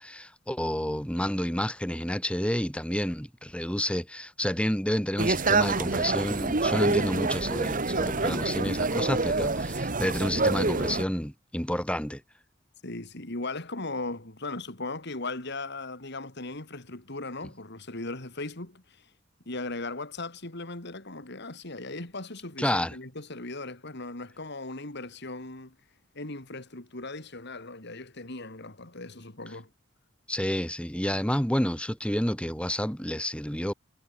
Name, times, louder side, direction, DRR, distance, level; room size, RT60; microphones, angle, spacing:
voice 1, 0.0-12.2 22.6-23.0 30.3-33.7, equal, 5° left, 6.6 m, -29 dB
sound 1, 5.2-11.0, right 3 dB, 45° right, 1.9 m, -27 dB
voice 2, 8.4-8.8 12.8-19.1 19.4-25.7 26.1-29.7, left 2 dB, 60° left, 3.3 m, -38 dB
head